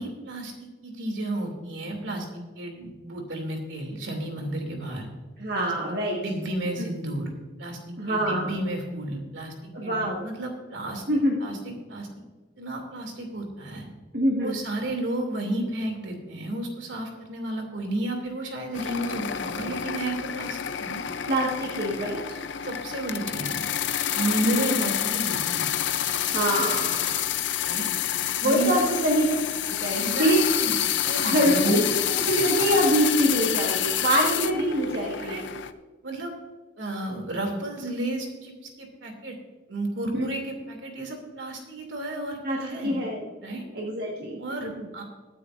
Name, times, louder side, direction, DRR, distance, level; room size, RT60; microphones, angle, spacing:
voice 1, 0.0-5.1 5.5-5.7 6.1-7.3 7.6-12.1 12.6-13.9 14.4-21.1 22.6-23.6 24.1-25.7 27.6-27.9 28.4-29.1 29.9-30.7 31.0-32.5 34.1-34.3 35.2-35.4 36.0-36.3 36.8-39.4 39.7-43.0 43.4-43.6 44.4-45.0, right 1 dB, 75° right, 3 dB, 2.7 m, -32 dB
voice 2, 5.4-6.2 8.0-8.5 9.7-10.2 11.1-11.4 14.1-14.6 21.3-22.4 24.4-24.7 26.3-27.2 28.4-29.2 29.6-30.4 31.2-31.8 32.1-35.4 40.1-40.3 42.4-42.6 42.8-43.3 43.7-44.9, equal, 55° right, -3 dB, 1.6 m, -25 dB
sound 1, 18.7-35.7, left 11 dB, 70° left, 0.6 m, -28 dB
21.0 x 9.1 x 2.6 m, 1.3 s
head